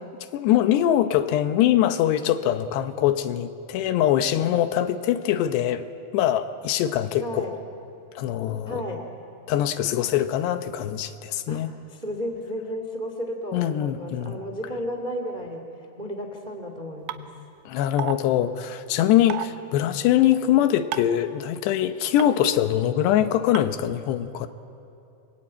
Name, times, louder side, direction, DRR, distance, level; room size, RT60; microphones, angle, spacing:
voice 1, 0.3-5.8 6.1-7.6 8.2-8.8 9.5-11.7 13.5-14.4 17.7-24.5, left 11 dB, 75° left, 9 dB, 2.9 m, -23 dB
voice 2, 7.2-7.5 8.7-9.1 11.5-17.3 22.2-22.4, equal, 55° right, 4 dB, 0.5 m, -33 dB
sound 1, 17.1-17.2 18.0-18.2 19.3-19.5 20.9-21.2 22.2-22.3 23.6-23.7, right 12 dB, 85° right, 3.1 m, -30 dB
30.0 x 23.0 x 8.8 m, 2.7 s
omnidirectional pair, 5.2 m